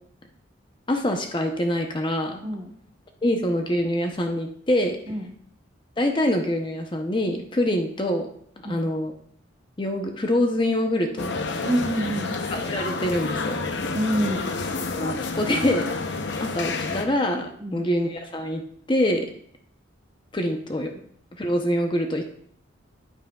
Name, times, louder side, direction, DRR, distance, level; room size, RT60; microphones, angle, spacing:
voice 1, 0.9-2.4 3.2-5.0 6.0-8.3 8.7-9.1 9.8-11.3 12.5-13.6 15.0-18.6 18.9-19.3 20.3-20.9 21.4-22.3, left 1 dB, 25° left, 4 dB, 0.6 m, -25 dB
voice 2, 2.4-2.7 5.1-5.3 8.6-8.8 11.6-12.4 13.9-14.5 17.6-17.8, right 1 dB, 25° right, 3 dB, 0.9 m, -26 dB
sound 1, 11.2-17.0, left 3 dB, 60° left, 0.7 m, -29 dB
10.0 x 8.8 x 2.3 m, 0.63 s
head